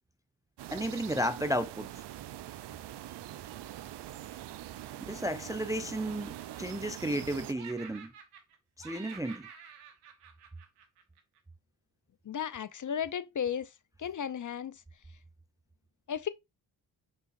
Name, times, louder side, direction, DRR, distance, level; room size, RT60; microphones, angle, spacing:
sound 1, 0.6-7.5, right 13 dB, 55° right, 0.6 m, -43 dB
voice 1, 0.7-1.9 5.0-8.1 8.8-9.5, equal, 5° right, 0.4 m, -33 dB
Laughter, 5.0-5.6 5.9-7.3 7.5-8.6 8.8-11.4, right 7 dB, 85° right, 1.1 m, -51 dB
voice 2, 12.2-13.7 14.0-14.8 16.1-16.3, left 8 dB, 40° left, 0.6 m, -34 dB
5.6 x 3.7 x 2.5 m
hypercardioid pair, 40°, 50 cm